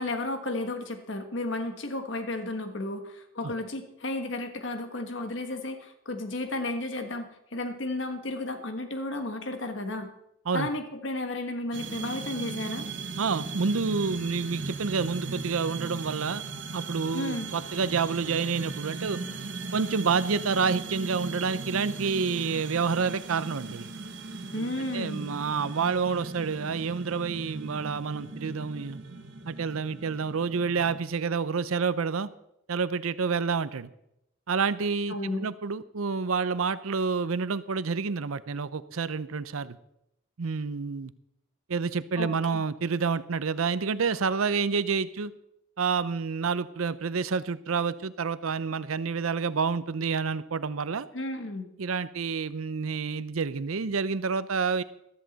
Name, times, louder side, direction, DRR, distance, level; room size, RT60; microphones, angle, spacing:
voice 1, 0.0-10.1 10.5-12.9 17.1-17.5 24.5-25.3 35.1-35.5 42.2-42.6 51.1-51.7, left 2 dB, 60° left, 7 dB, 1.4 m, -33 dB
sound 1, 11.7-31.0, right 4 dB, 60° right, 1.3 m, -38 dB
voice 2, 13.2-16.4 16.7-19.2 19.7-23.9 24.6-29.0 29.4-32.3 32.7-33.9 34.5-39.8 40.4-41.1 41.7-45.3 45.8-51.1 51.8-54.8, right 5 dB, 85° right, 15 dB, 0.6 m, -28 dB
14.0 x 13.0 x 4.1 m, 0.81 s
head